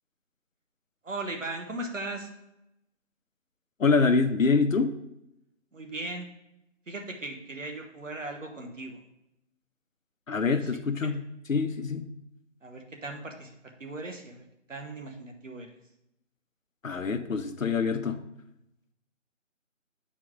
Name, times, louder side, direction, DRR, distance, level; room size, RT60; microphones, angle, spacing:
voice 1, 1.0-2.3 5.7-6.3 6.9-9.0 10.4-10.6 12.6-13.5 13.8-14.4 14.7-15.7, right 2 dB, 75° right, 3 dB, 1.4 m, -38 dB
voice 2, 3.8-4.9 10.3-11.2 11.5-12.1 16.8-18.2, left 4 dB, 85° left, 9 dB, 0.8 m, -25 dB
7.6 x 4.5 x 3.7 m, 0.85 s
figure-of-eight pair, 165°, 39 cm